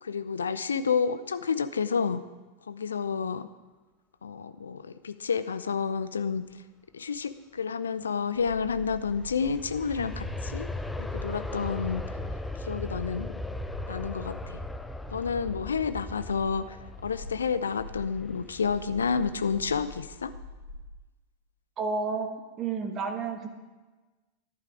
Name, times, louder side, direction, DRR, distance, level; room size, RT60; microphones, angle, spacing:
voice 1, 0.0-2.2 2.7-3.5 4.2-6.4 6.9-10.7 11.0-12.0 12.6-13.3 13.9-14.6 15.1-16.8 17.0-20.3, left 6 dB, 70° left, 13 dB, 0.6 m, -30 dB
sound 1, 8.4-20.9, left 1 dB, 55° left, 4.5 m, -45 dB
Aircraft, 8.8-19.7 20.1-20.2, left 1 dB, 5° left, 0.6 m, -38 dB
voice 2, 21.8-22.3 22.6-23.5, right 4 dB, 30° right, 5 dB, 1.3 m, -30 dB
12.0 x 11.0 x 4.9 m, 1.2 s
figure-of-eight pair, 90°, 0 cm